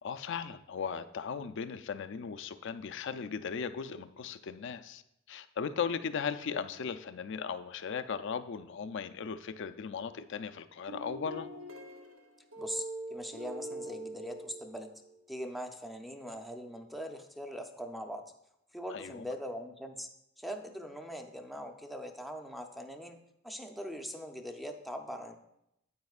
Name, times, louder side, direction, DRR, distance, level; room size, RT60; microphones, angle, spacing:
voice 1, 0.0-5.0 5.3-11.5 18.9-19.2, left 6 dB, 65° left, 11 dB, 0.4 m, -37 dB
sound 1, 10.0-10.4 10.9-15.2, right 1 dB, 85° right, 0.8 m, -43 dB
voice 2, 12.6-14.9 15.3-18.2 18.7-20.1 20.4-23.2 23.4-25.4, equal, ahead, 3 dB, 0.6 m, -41 dB
9.4 x 8.5 x 2.4 m, 0.81 s
head